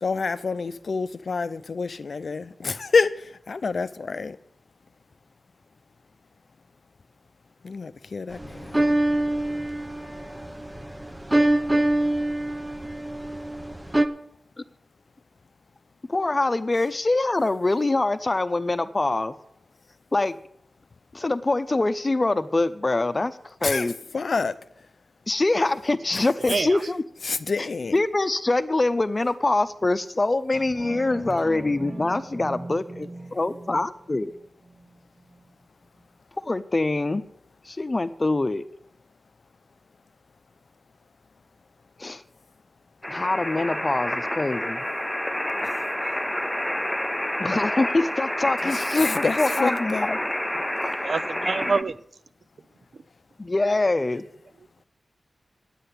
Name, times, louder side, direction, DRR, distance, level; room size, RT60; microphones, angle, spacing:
voice 1, 0.0-3.1 3.5-4.4 7.6-8.8 23.6-23.8 24.1-24.5 27.2-28.0 49.0-50.1, left 4 dB, 65° left, 0.6 m, -27 dB
sound 1, 8.3-14.1, right 1 dB, 15° right, 0.9 m, -25 dB
voice 2, 16.1-19.3 20.1-20.3 21.1-23.9 25.3-27.0 27.6-27.7 27.9-34.3 36.4-37.2 37.7-38.6 42.0-42.2 43.1-44.8 47.4-50.2 53.4-54.2, left 2 dB, 35° left, 0.8 m, -24 dB
voice 3, 26.4-26.8 51.0-51.9, right 4 dB, 70° right, 0.6 m, -26 dB
sound 2, 30.5-35.5 36.0-36.1, right 2 dB, 40° right, 1.7 m, -40 dB
sound 3, 43.0-51.8, left 1 dB, 10° left, 0.5 m, -28 dB
10.0 x 7.8 x 8.5 m
wide cardioid pair, 70°, 0 cm